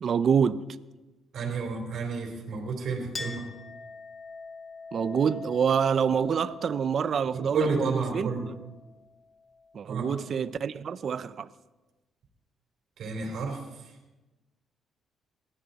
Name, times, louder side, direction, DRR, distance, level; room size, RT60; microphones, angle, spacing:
voice 1, 0.0-0.7 4.9-8.5 9.7-11.5, right 7 dB, 55° right, 0.6 m, -27 dB
voice 2, 1.3-3.4 7.3-8.5 9.9-10.1 13.0-13.6, right 4 dB, 70° right, 3.6 m, -30 dB
Chink clink, 3.1-10.2, left 4 dB, 30° left, 1.7 m, -44 dB
20.0 x 14.0 x 4.2 m
cardioid pair, 90°, 0 cm